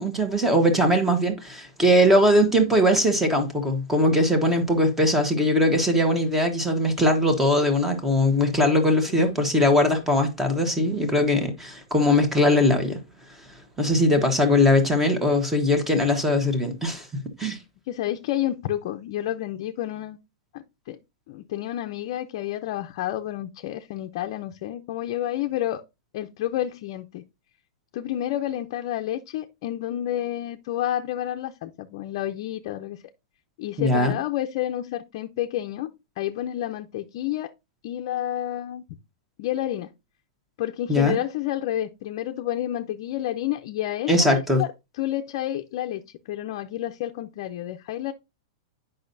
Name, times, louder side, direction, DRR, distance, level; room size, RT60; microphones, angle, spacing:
voice 1, 0.0-13.0 13.8-17.6 33.8-34.1 40.9-41.2 44.1-44.6, left 1 dB, 10° right, 1.3 m, -21 dB
voice 2, 9.1-9.4 17.9-20.2 20.5-21.0 21.3-25.8 26.1-27.2 27.9-33.0 33.6-37.5 37.8-38.8 39.4-39.9 40.6-44.7 45.0-46.0 46.3-48.1, left 12 dB, 50° left, 0.5 m, -30 dB
8.7 x 5.5 x 2.6 m
supercardioid pair, 155°, 3 cm